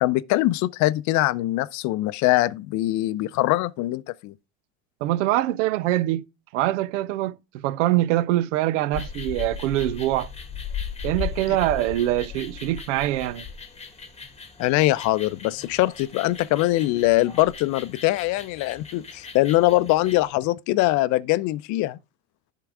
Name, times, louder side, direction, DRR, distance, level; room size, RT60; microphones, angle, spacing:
voice 1, 0.0-4.3 14.6-22.0, left 17 dB, 50° left, 0.5 m, -22 dB
voice 2, 5.0-6.2 6.5-10.3 11.0-13.4, right 15 dB, 80° right, 0.5 m, -24 dB
sound 1, 8.9-20.3, left 6 dB, 15° left, 1.4 m, -37 dB
10.5 x 3.7 x 4.7 m
hypercardioid pair, 90°, 36 cm